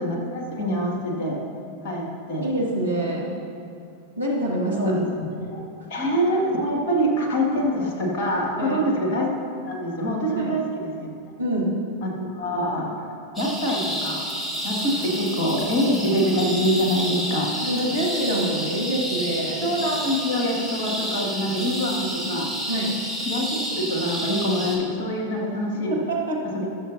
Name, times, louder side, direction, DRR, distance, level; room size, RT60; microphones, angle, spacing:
voice 1, 0.0-1.4 1.8-2.5 4.7-5.6 5.9-9.3 9.6-11.1 12.0-13.1 13.4-14.2 14.6-17.5 19.6-22.5 23.3-26.0 26.4-26.7, equal, 50° left, 0 dB, 2.0 m, -25 dB
voice 2, 2.4-3.3 4.2-4.9 8.6-8.8 10.4-10.6 11.4-11.9 17.6-19.7 22.7-23.0 25.7-26.6, right 1 dB, 85° right, -5 dB, 1.8 m, -26 dB
sound 1, 13.4-24.8, equal, 10° left, 2.0 m, -30 dB
20.5 x 6.8 x 2.8 m, 2.7 s
figure-of-eight pair, 90°, 0 cm